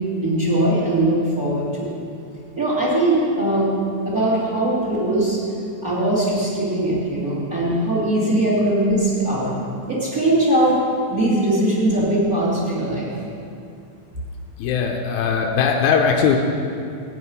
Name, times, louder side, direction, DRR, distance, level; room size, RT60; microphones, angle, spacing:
voice 1, 0.2-1.9 2.6-3.7 4.0-5.4 5.8-9.5 9.8-10.8 11.1-13.1 15.0-15.1, right 1 dB, 30° right, -6 dB, 3.2 m, -20 dB
voice 2, 14.6-16.4, left 6 dB, 80° left, 1 dB, 2.3 m, -19 dB
15.5 x 5.4 x 9.6 m, 2.4 s
omnidirectional pair, 3.5 m